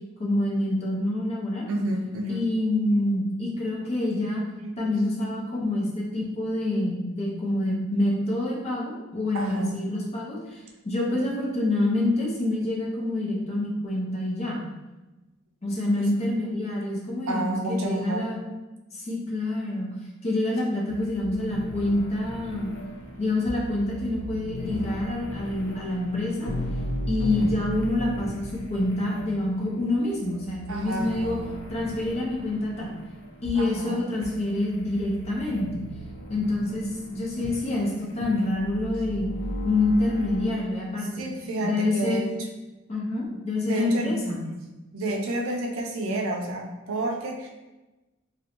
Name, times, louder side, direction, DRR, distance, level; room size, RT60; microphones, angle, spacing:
voice 1, 0.2-1.6 2.3-4.4 4.8-14.6 15.6-18.4 18.9-19.9 20.2-22.7 23.2-26.5 27.1-31.4 31.7-32.9 33.4-35.8 36.3-39.3 39.6-41.2 41.6-42.3 42.9-44.4, left 1 dB, 30° left, -4 dB, 0.5 m, -27 dB
voice 2, 1.7-2.5 3.9-4.8 5.1-5.5 6.2-6.3 9.3-10.0 11.3-11.4 16.0-16.8 17.2-18.3 30.7-31.6 33.6-34.0 38.3-38.5 41.1-42.5 43.6-44.2 44.9-47.5, right 1 dB, 75° right, 1 dB, 0.5 m, -31 dB
sound 1, 20.9-40.5, equal, 85° left, 0.5 m, -37 dB
2.5 x 2.0 x 2.8 m, 1.1 s
head